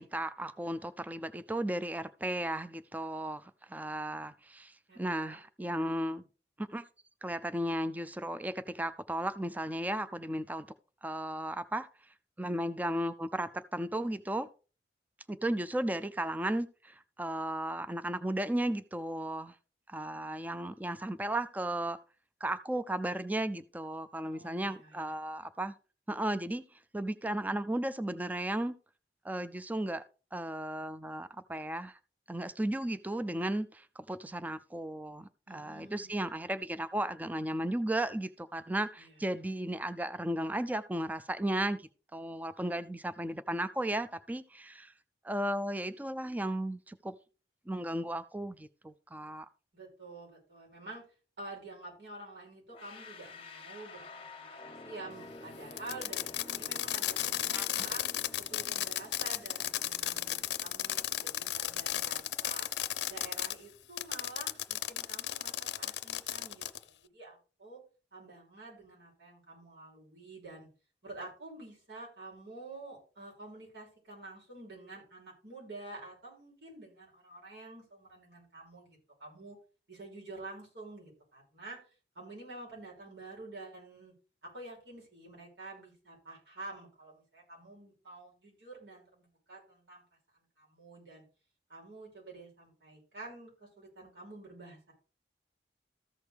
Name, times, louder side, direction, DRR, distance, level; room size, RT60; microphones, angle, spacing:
voice 1, 0.0-6.2 6.6-6.8 7.2-10.7 11.0-11.9 12.4-14.5 15.3-19.5 19.9-22.0 22.4-25.7 26.1-26.6 26.9-28.7 29.2-30.0 30.3-32.0 32.3-44.9 45.2-47.1 47.7-49.5 57.5-57.7, right 1 dB, 10° right, 0.4 m, -35 dB
voice 2, 4.9-5.4 24.2-25.1 35.5-36.2 39.0-39.2 49.7-51.0 51.4-58.0 58.4-62.7 63.1-67.8 68.1-70.7 71.0-79.6 79.9-84.1 84.4-90.0 90.6-91.2 91.7-94.9, right 2 dB, 80° right, 5.9 m, -49 dB
sound 1, 52.7-63.6, left 2 dB, 30° left, 0.8 m, -51 dB
Fireworks, 55.7-63.5 64.0-66.8, left 13 dB, 80° left, 0.5 m, -34 dB
14.0 x 6.3 x 3.4 m
head